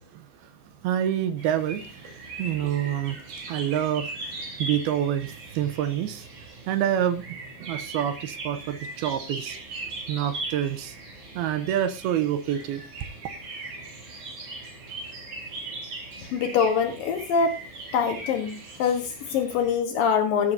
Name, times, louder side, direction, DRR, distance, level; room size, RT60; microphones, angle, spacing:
voice 1, 0.1-0.5 0.8-2.0 2.4-3.2 3.5-6.3 6.7-9.6 10.1-11.0 11.4-12.8, right 10 dB, 80° right, 2.3 m, -27 dB
sound 1, 1.4-19.8, right 2 dB, 45° right, 4.9 m, -39 dB
voice 2, 16.3-17.6 17.9-20.5, left 6 dB, 70° left, 2.2 m, -24 dB
16.5 x 9.7 x 2.7 m
omnidirectional pair, 5.4 m